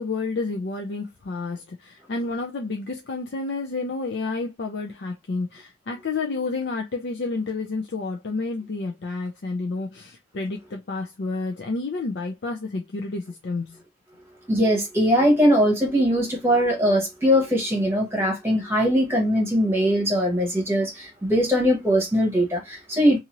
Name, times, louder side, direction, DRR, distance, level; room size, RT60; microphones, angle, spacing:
voice 1, 0.0-13.8, left 3 dB, 70° left, 0.5 m, -30 dB
voice 2, 14.5-23.2, equal, 15° right, 1.0 m, -21 dB
2.8 x 2.5 x 2.9 m
head